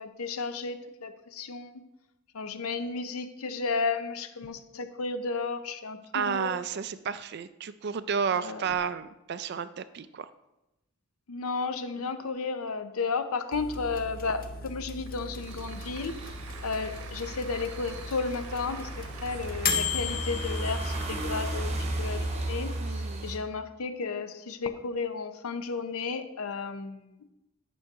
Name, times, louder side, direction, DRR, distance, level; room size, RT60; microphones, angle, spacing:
voice 1, 0.0-1.8 2.3-6.5 8.3-8.7 11.3-16.2 16.6-27.2, left 4 dB, 80° left, 10 dB, 0.6 m, -33 dB
voice 2, 6.1-10.3 22.8-23.3, right 6 dB, 50° right, 14 dB, 0.3 m, -32 dB
sound 1, 13.5-22.6, left 4 dB, 40° left, 0.6 m, -36 dB
Applause, 15.0-22.4, right 5 dB, 85° right, 0.9 m, -47 dB
sound 2, 15.4-23.4, right 1 dB, 30° right, 0.9 m, -35 dB
9.3 x 6.2 x 3.6 m, 0.95 s
head